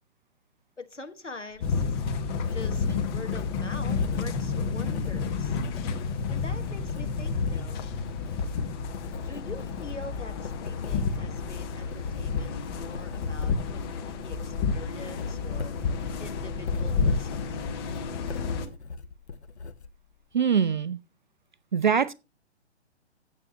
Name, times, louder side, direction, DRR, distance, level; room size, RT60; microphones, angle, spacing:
voice 1, 0.8-1.8 2.5-2.9 3.1-5.6 6.3-7.9 9.2-15.7 16.2-17.7, left 3 dB, 85° left, 1.5 m, -44 dB
Writing, 1.5-20.3, left 5 dB, 70° left, 1.2 m, -43 dB
sound 1, 1.6-18.7, left 5 dB, 20° left, 0.9 m, -30 dB
voice 2, 20.3-21.0 21.7-22.1, right 7 dB, 45° right, 0.4 m, -23 dB
15.5 x 7.2 x 2.9 m
figure-of-eight pair, 125°, 35 cm